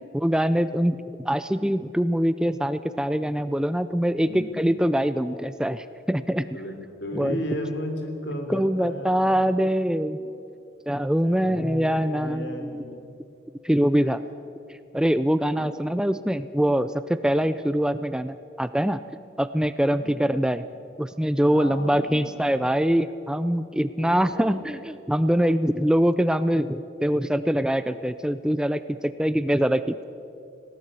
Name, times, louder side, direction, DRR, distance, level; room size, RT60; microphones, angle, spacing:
voice 1, 0.1-1.0 1.2-6.5 7.1-7.4 8.5-10.2 10.9-12.8 13.6-14.2 14.7-19.0 19.4-20.6 21.0-30.0, equal, 5° right, 13 dB, 0.4 m, -23 dB
voice 2, 4.2-4.6 6.5-9.4 11.2-13.1 14.0-14.2 20.0-20.4 21.5-22.7 24.0-24.7, equal, 70° left, 5 dB, 3.6 m, -35 dB
20.5 x 17.0 x 8.2 m, 2.6 s
head